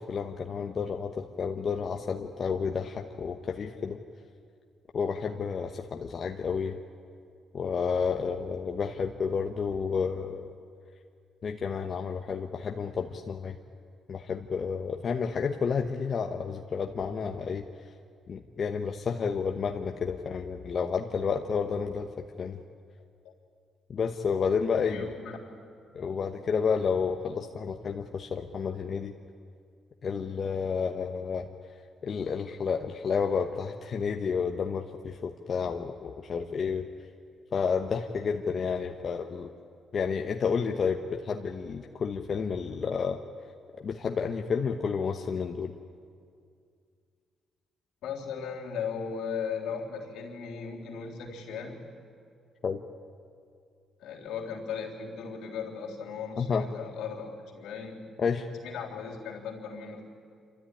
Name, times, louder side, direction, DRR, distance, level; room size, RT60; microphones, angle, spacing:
voice 1, 0.0-4.0 4.9-6.8 7.5-10.5 11.4-13.6 14.1-17.7 18.3-22.1 22.4-22.6 23.9-25.1 25.9-29.1 30.0-31.5 32.0-36.9 37.5-39.5 39.9-43.2 43.8-45.7 52.6-52.8 56.4-56.7 58.2-58.5, left 6 dB, 50° left, 4 dB, 1.0 m, -30 dB
voice 2, 24.9-25.5 48.0-51.9 54.0-58.0 58.5-60.0, left 6 dB, 85° left, -1 dB, 3.6 m, -37 dB
27.0 x 13.0 x 9.9 m, 2.3 s
cardioid pair, 90°, 0 cm